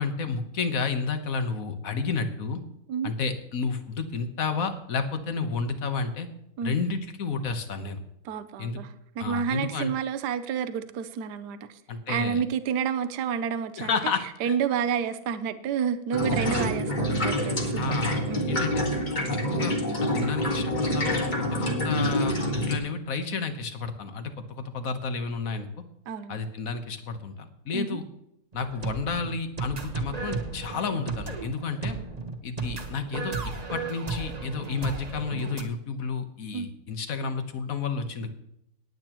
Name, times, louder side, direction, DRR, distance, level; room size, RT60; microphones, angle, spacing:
voice 1, 0.0-2.6 3.0-6.3 6.6-8.0 8.6-8.8 9.2-9.9 11.9-12.4 13.8-14.5 16.4-16.8 17.8-18.2 18.5-18.8 19.5-21.2 21.8-25.7 26.3-28.0 28.5-32.0 32.4-38.3, left 5 dB, 55° left, 8 dB, 1.5 m, -31 dB
voice 2, 8.2-11.8 12.1-17.9 18.3-18.5 26.1-26.4 27.7-28.0 36.5-36.7, right 7 dB, 70° right, 10 dB, 1.3 m, -30 dB
sound 1, 16.1-22.8, equal, 25° left, 1.7 m, -27 dB
sound 2, 28.5-35.6, right 4 dB, 25° right, 1.0 m, -34 dB
19.0 x 8.8 x 3.0 m, 0.81 s
omnidirectional pair, 1.9 m